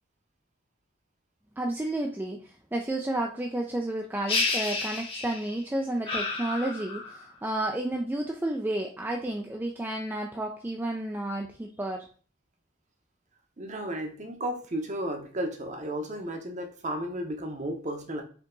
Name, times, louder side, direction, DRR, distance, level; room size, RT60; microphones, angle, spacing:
voice 1, 1.6-12.0, right 1 dB, 10° right, 2 dB, 0.3 m, -31 dB
sound 1, 4.3-5.6 6.1-7.3, left 3 dB, 25° left, 0.9 m, -30 dB
voice 2, 13.6-18.2, right 1 dB, 35° right, 4 dB, 0.8 m, -33 dB
4.5 x 2.8 x 3.8 m, 0.41 s
head